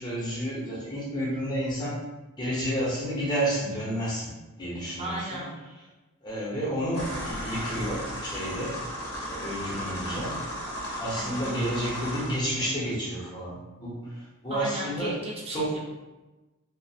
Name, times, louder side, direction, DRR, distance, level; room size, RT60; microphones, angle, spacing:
voice 1, 0.0-2.0 2.4-4.2 4.6-5.4 6.2-8.8 9.3-10.3 11.0-15.2 15.5-15.7, equal, 20° left, -7 dB, 0.8 m, -30 dB
voice 2, 5.0-5.5 11.2-11.6 14.5-15.8, right 2 dB, 25° right, -4 dB, 0.5 m, -35 dB
sound 1, 6.9-12.4, equal, 85° left, 0.7 m, -35 dB
2.5 x 2.1 x 2.7 m, 1.1 s
head